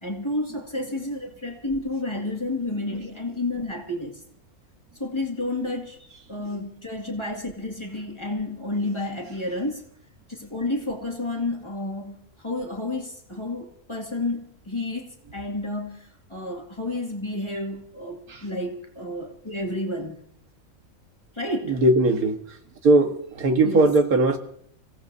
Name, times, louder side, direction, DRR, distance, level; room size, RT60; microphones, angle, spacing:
voice 1, 0.0-4.2 5.0-6.0 6.3-9.9 10.3-20.2 21.3-21.8 23.6-23.9, left 2 dB, 20° left, 2.1 m, -30 dB
voice 2, 21.7-22.4 22.8-24.4, right 2 dB, 85° right, 2.0 m, -19 dB
29.0 x 16.5 x 2.7 m
omnidirectional pair, 1.5 m